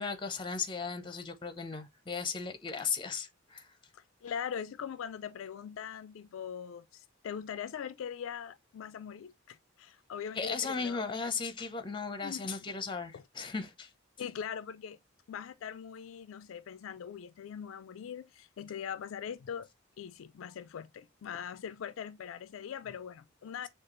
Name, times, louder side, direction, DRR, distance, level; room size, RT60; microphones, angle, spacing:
voice 1, 0.0-3.7 10.3-13.9, left 5 dB, 25° left, 0.7 m, -36 dB
voice 2, 3.9-11.0 12.2-12.8 13.1-13.2 14.2-15.0 15.3-19.7 20.0-23.7, left 8 dB, 70° left, 0.3 m, -41 dB
6.4 x 2.4 x 3.0 m
head